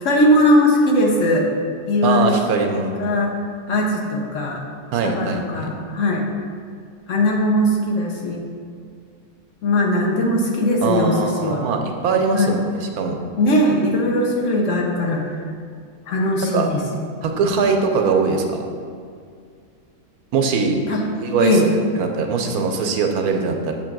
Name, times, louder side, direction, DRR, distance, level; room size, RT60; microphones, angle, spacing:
voice 1, 0.0-1.5 1.9-2.3 2.6-3.3 3.7-4.6 5.0-6.2 7.1-8.4 9.6-11.6 12.3-12.6 13.4-15.3 16.1-16.8 20.9-21.0 21.4-21.7, left 1 dB, 60° left, 0 dB, 0.9 m, -19 dB
voice 2, 2.0-3.0 4.9-5.7 10.8-13.2 16.5-16.7 17.2-18.6 20.3-20.8 21.2-21.6 22.0-23.7, right 4 dB, 75° right, 3 dB, 1.1 m, -21 dB
7.3 x 2.9 x 5.9 m, 2.2 s
omnidirectional pair, 1.7 m